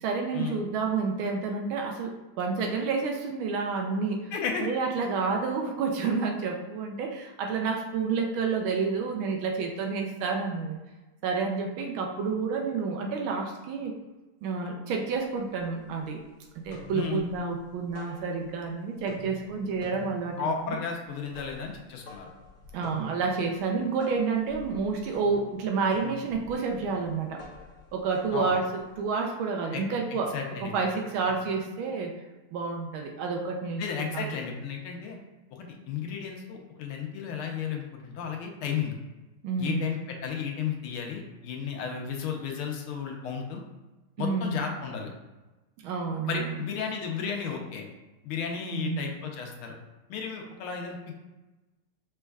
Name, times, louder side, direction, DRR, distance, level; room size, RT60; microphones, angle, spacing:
voice 1, 0.0-4.3 4.6-10.8 11.2-13.9 14.4-16.2 16.6-20.8 22.7-27.4 27.9-30.3 30.6-32.2 32.5-34.3 39.4-39.9 44.2-44.5 45.8-46.6 48.7-49.0, right 4 dB, 75° right, 2 dB, 1.3 m, -29 dB
voice 2, 4.3-4.7 16.9-17.2 20.4-22.3 28.3-28.6 29.7-29.8 30.1-30.7 31.3-31.4 33.8-35.2 35.5-39.0 39.6-43.6 44.2-45.1 46.3-47.9 48.2-49.7 50.1-51.1, left 6 dB, 75° left, 2 dB, 1.5 m, -33 dB
sound 1, 15.6-16.2 16.5-18.7 19.0-29.1, left 1 dB, 55° left, 1.1 m, -49 dB
6.1 x 3.4 x 2.3 m, 1.1 s
omnidirectional pair, 2.4 m